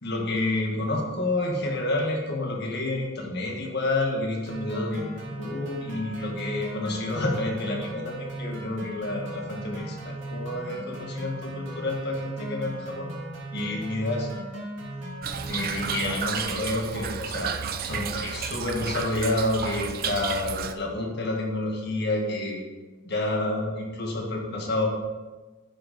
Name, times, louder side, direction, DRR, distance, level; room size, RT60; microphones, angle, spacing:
voice 1, 0.0-13.1 13.5-14.4 15.5-22.6 23.0-24.9, left 2 dB, 55° left, 0 dB, 1.8 m, -29 dB
sound 1, 4.5-16.0, right 1 dB, 65° right, 2.8 m, -37 dB
Toilet flush / Trickle dribble, 15.2-20.7, right 7 dB, 45° right, 0.5 m, -32 dB
10.5 x 6.6 x 4.2 m, 1.3 s
head